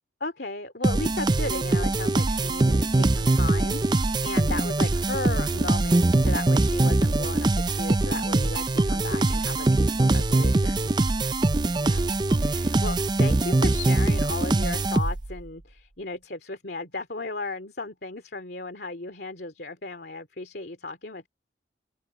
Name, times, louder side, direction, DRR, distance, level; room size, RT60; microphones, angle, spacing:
voice 1, 0.2-10.9 11.8-12.1 12.4-21.3, left 3 dB, 60° left, 2.5 m, -35 dB
sound 1, 0.8-15.4, right 2 dB, 25° right, 0.4 m, -23 dB
head